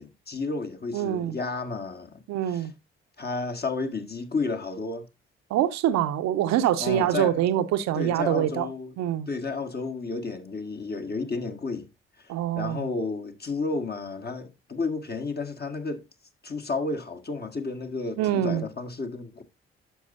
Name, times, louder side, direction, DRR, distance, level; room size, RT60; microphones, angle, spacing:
voice 1, 0.0-2.2 2.5-2.7 3.2-5.1 6.8-7.4 7.9-8.9 9.3-11.9 12.2-16.1 16.4-19.4, left 3 dB, 35° left, 1.7 m, -32 dB
voice 2, 0.9-1.3 2.3-2.7 5.5-8.7 9.0-9.3 12.3-12.9 18.2-18.6, right 11 dB, 65° right, 0.8 m, -25 dB
11.0 x 7.0 x 2.6 m
hypercardioid pair, 40°, 29 cm